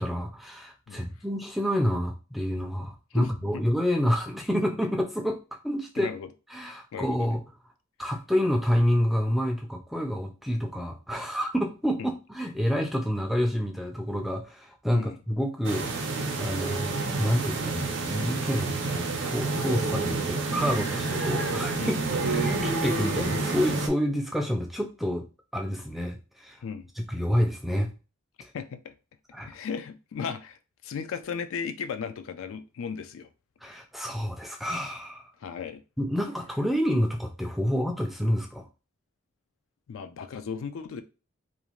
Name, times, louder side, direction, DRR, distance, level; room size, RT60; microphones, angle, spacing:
voice 1, 0.0-6.1 6.5-7.4 8.0-21.9 22.3-25.3 25.5-26.6 27.0-27.9 28.4-28.5 29.3-29.5 33.6-35.2 36.0-38.7, equal, ahead, 0.3 m, -28 dB
voice 2, 3.1-3.6 6.0-6.3 6.9-7.3 12.0-12.1 14.9-15.2 21.8-22.0 26.6-26.9 28.5-28.9 29.5-30.6 30.8-33.3 35.4-35.8 39.9-41.0, left 6 dB, 85° left, 0.4 m, -35 dB
sound 1, 15.6-23.9, right 3 dB, 65° right, 0.5 m, -29 dB
2.5 x 2.4 x 3.0 m
head